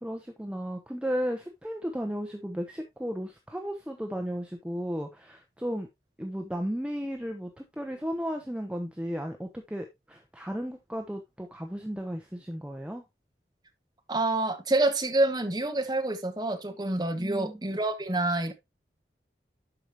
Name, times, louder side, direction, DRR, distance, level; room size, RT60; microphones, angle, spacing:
voice 1, 0.0-5.9 6.2-13.0 17.2-17.6, equal, 5° right, 0.7 m, -34 dB
voice 2, 14.1-18.5, right 2 dB, 20° right, 1.1 m, -27 dB
11.5 x 4.9 x 2.9 m
head